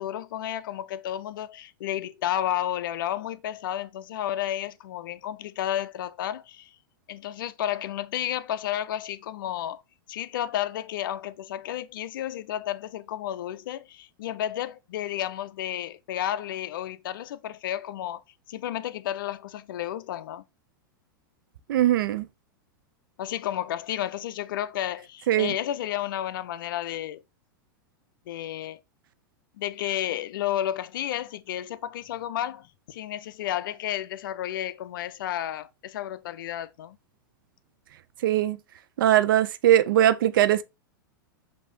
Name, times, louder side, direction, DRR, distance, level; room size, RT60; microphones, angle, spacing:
voice 1, 0.0-6.7 7.1-9.8 10.1-18.2 18.5-20.4 23.2-27.2 28.3-28.8 29.6-37.0, left 12 dB, 70° left, 0.4 m, -32 dB
voice 2, 21.7-22.3 25.3-25.5 38.2-38.6 39.0-40.6, right 12 dB, 75° right, 0.4 m, -20 dB
5.4 x 2.7 x 2.7 m
hypercardioid pair, 115°, 11 cm